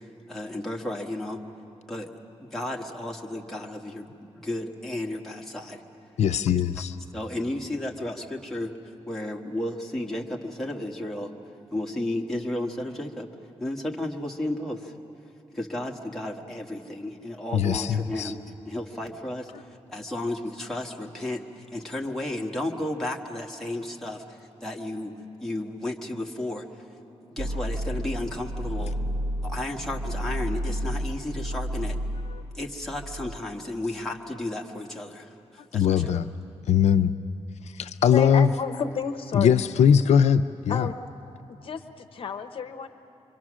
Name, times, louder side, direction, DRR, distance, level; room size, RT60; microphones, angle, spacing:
voice 1, 0.3-1.4 1.9-2.1 2.4-5.8 7.1-8.7 9.1-11.3 11.7-13.3 13.6-14.9 15.5-18.4 18.6-25.1 25.4-26.6 27.3-29.0 29.4-32.0 32.5-36.3, left 1 dB, 5° left, -1 dB, 1.3 m, -33 dB
voice 2, 6.2-7.0 17.5-18.3 32.3-32.4 35.7-36.3 36.7-37.1 37.8-38.5 39.3-40.9, left 8 dB, 80° left, 9 dB, 0.5 m, -21 dB
sound 1, 27.4-33.4, equal, 75° right, 1.1 m, -31 dB
voice 3, 38.1-39.6 40.7-41.0 41.6-42.9, left 6 dB, 55° left, 8 dB, 0.8 m, -31 dB
26.0 x 24.0 x 6.2 m, 2.8 s
wide cardioid pair, 170°, 11 cm